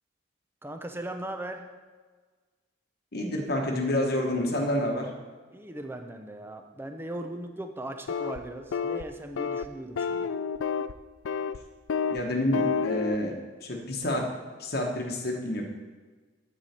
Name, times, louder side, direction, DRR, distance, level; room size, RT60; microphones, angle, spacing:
voice 1, 0.6-1.6 5.5-10.3, right 1 dB, 10° right, 5 dB, 0.6 m, -38 dB
voice 2, 3.1-5.1 12.1-13.3 13.6-14.3 14.6-15.6, left 1 dB, 50° left, 0 dB, 1.1 m, -28 dB
sound 1, 8.1-8.4 8.7-9.0 9.4-9.7 10.0-10.9 11.3-11.6 11.9-12.2 12.5-13.2, left 6 dB, 80° left, 0.4 m, -29 dB
9.3 x 8.2 x 4.3 m, 1.4 s
head